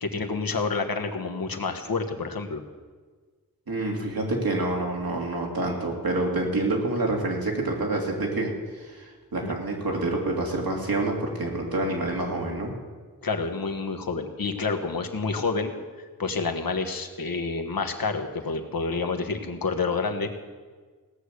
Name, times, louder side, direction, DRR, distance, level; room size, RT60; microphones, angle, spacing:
voice 1, 0.0-2.6 9.4-9.6 13.2-15.7 16.0-20.4, left 4 dB, 75° left, 5 dB, 1.4 m, -29 dB
voice 2, 3.7-12.7, right 2 dB, 80° right, 0 dB, 2.8 m, -27 dB
17.0 x 6.5 x 8.3 m, 1.4 s
wide cardioid pair, 65°, 35 cm